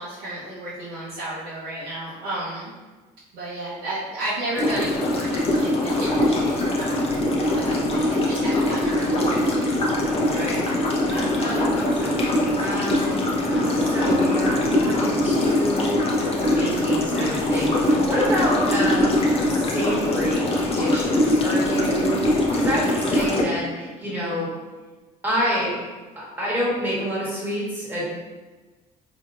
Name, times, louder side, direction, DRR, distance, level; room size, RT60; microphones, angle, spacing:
voice 1, 0.0-2.7 3.3-7.3 7.5-9.5, right 1 dB, 90° right, -11 dB, 1.0 m, -33 dB
sound 1, 4.6-23.4, left 1 dB, 35° left, 0.8 m, -22 dB
voice 2, 10.3-10.8 11.0-16.3 16.6-19.1 19.5-24.6 25.2-25.8 26.1-28.0, equal, 10° right, -7 dB, 1.5 m, -28 dB
4.1 x 2.9 x 2.5 m, 1.3 s
cardioid pair, 105°, 16 cm